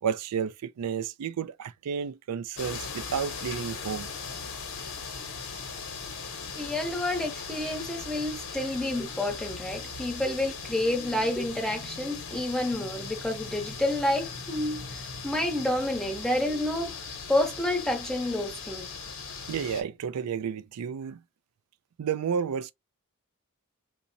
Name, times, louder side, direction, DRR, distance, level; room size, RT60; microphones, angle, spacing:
voice 1, 0.0-4.1 19.5-21.2 22.0-22.7, right 7 dB, 90° right, 0.4 m, -31 dB
sound 1, 2.6-19.8, left 5 dB, 60° left, 0.9 m, -39 dB
voice 2, 6.6-17.0 17.3-18.9, left 1 dB, ahead, 0.9 m, -29 dB
3.8 x 2.1 x 2.6 m
head